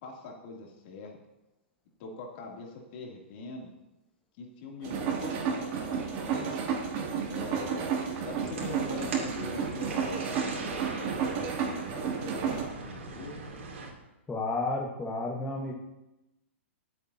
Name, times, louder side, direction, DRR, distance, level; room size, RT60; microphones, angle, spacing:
voice 1, 0.0-1.2 2.0-3.7 4.4-6.6 7.3-13.3, left 3 dB, 50° left, 0 dB, 2.9 m, -42 dB
sound 1, 4.8-12.6, right 6 dB, 40° right, 2.6 m, -32 dB
sound 2, 8.1-13.9, right 4 dB, 75° right, 3.1 m, -41 dB
voice 2, 14.3-15.7, left 2 dB, 10° left, -3 dB, 1.4 m, -31 dB
23.5 x 8.1 x 2.9 m, 0.96 s
hypercardioid pair, 135°, 7 cm